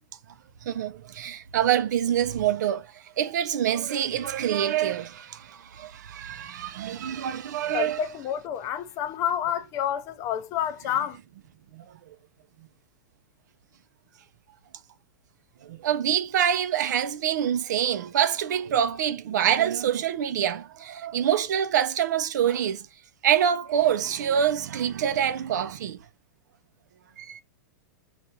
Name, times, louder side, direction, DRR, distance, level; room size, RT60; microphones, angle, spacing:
voice 1, 0.6-2.8 3.2-8.0 11.7-11.8 15.6-22.9 23.2-26.0 27.2-27.4, right 9 dB, 75° right, 0.6 m, -26 dB
voice 2, 7.7-11.2, left 10 dB, 35° left, 0.5 m, -29 dB
5.3 x 2.5 x 2.8 m
hypercardioid pair, 135°, 10 cm